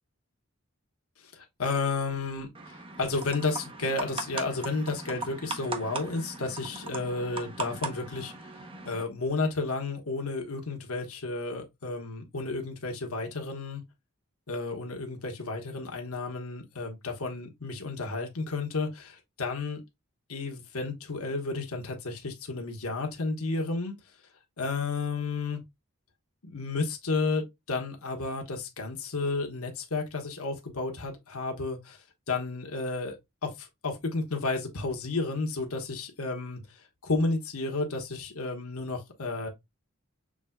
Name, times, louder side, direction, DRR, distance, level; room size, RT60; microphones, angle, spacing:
voice 1, 1.2-8.5 8.8-13.8 14.5-19.8 20.3-24.0 24.6-25.6 26.4-39.5, left 3 dB, 80° left, 1.2 m, -32 dB
sound 1, 2.6-9.0, right 3 dB, 25° right, 0.8 m, -39 dB
6.2 x 3.3 x 2.2 m
head